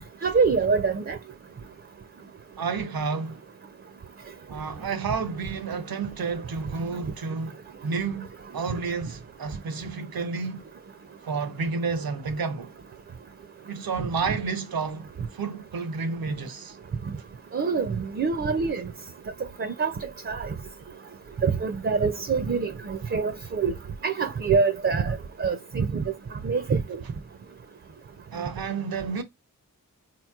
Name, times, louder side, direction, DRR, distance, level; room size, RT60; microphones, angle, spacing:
voice 1, 0.2-1.2 17.5-18.9 19.6-20.5 21.4-23.7 24.0-26.0 26.4-26.8, right 5 dB, 35° right, 0.4 m, -25 dB
voice 2, 2.6-3.4 4.5-10.6 11.2-12.7 13.7-16.8 28.3-29.2, right 4 dB, 80° right, 0.7 m, -31 dB
3.9 x 2.9 x 2.3 m
cardioid pair, 50°, 35 cm